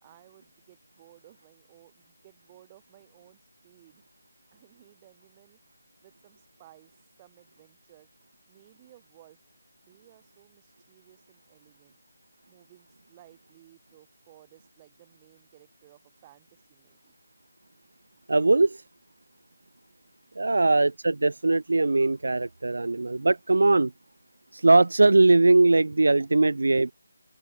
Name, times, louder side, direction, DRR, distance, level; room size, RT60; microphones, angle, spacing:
voice 1, 0.0-4.0 4.5-5.6 6.0-6.9 7.2-8.1 8.5-9.5 9.9-12.0 12.5-17.2, right 15 dB, 10° right, 5.3 m, -57 dB
voice 2, 18.3-18.8 20.4-23.9 24.5-26.9, right 2 dB, 60° right, 0.7 m, -20 dB
open air
figure-of-eight pair, 180°, 0 cm